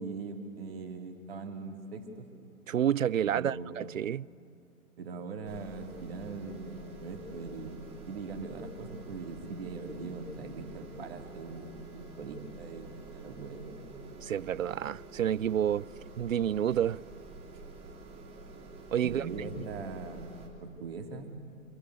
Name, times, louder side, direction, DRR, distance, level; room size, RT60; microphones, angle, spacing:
voice 1, 0.0-2.3 3.2-3.8 5.0-13.9 19.0-21.3, right 4 dB, 40° right, 2.8 m, -41 dB
voice 2, 2.7-4.3 14.2-15.9 16.2-17.0 18.9-19.2, right 9 dB, 65° right, 0.5 m, -29 dB
sound 1, 5.4-20.5, right 2 dB, 15° right, 3.2 m, -48 dB
26.0 x 21.5 x 9.6 m
figure-of-eight pair, 130°, 43 cm